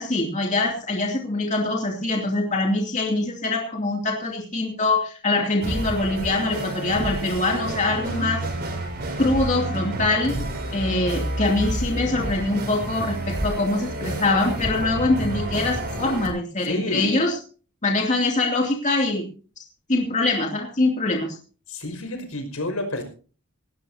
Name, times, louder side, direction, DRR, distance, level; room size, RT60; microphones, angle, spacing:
voice 1, 0.0-8.4 9.2-10.4 10.7-17.3 17.8-19.3 19.9-21.4, left 2 dB, 35° left, 1 dB, 2.7 m, -23 dB
sound 1, 5.6-16.3, right 1 dB, 50° right, 5.9 m, -29 dB
voice 2, 7.9-8.3 16.6-17.2 21.7-23.0, left 1 dB, 75° left, 6 dB, 5.5 m, -30 dB
18.5 x 18.0 x 2.8 m, 0.38 s
head